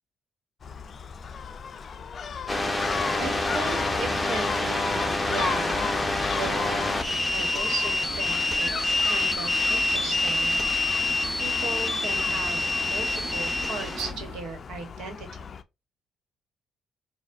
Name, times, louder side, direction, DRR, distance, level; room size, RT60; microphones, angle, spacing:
Gull seagull, 0.6-15.6, left 6 dB, 50° left, 0.3 m, -37 dB
sound 1, 2.5-14.1, left 2 dB, 15° left, 0.6 m, -27 dB
sound 2, 2.8-14.4, right 3 dB, 60° right, 1.0 m, -42 dB
voice 1, 3.2-5.9 6.4-6.8 7.3-10.6 11.4-15.3, right 4 dB, 80° right, 1.1 m, -36 dB
4.3 x 2.2 x 2.5 m
cardioid pair, 90°, 0 cm